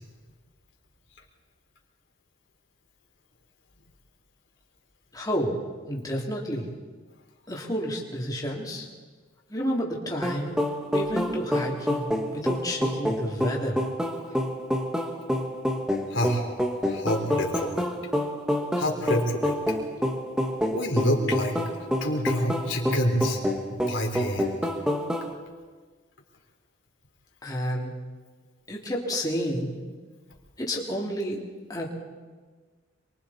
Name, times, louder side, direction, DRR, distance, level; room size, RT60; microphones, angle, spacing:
voice 1, 5.1-5.6 5.9-6.7 7.5-8.8 9.5-10.6 10.9-13.8 27.4-27.9 28.7-29.7 30.6-31.4 31.7-31.9, equal, 20° left, -3 dB, 3.0 m, -30 dB
sound 1, 10.2-25.3, equal, 5° right, 1.5 m, -27 dB
voice 2, 16.1-16.5 16.9-17.8 18.8-19.6 20.7-21.6 22.0-23.4 23.7-24.6, equal, 75° left, 1 dB, 3.7 m, -27 dB
27.5 x 23.0 x 4.3 m, 1.4 s
head